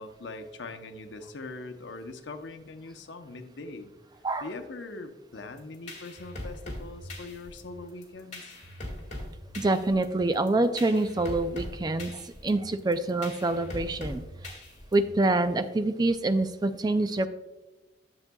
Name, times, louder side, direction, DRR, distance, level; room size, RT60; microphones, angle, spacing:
voice 1, 0.0-3.9 4.4-8.6, left 3 dB, 90° left, 7 dB, 0.7 m, -42 dB
sound 1, 5.6-15.2, left 1 dB, 40° left, 1.9 m, -41 dB
voice 2, 9.6-14.2 14.9-17.3, right 2 dB, 20° right, 10 dB, 0.4 m, -26 dB
10.5 x 7.1 x 2.3 m, 1.1 s
head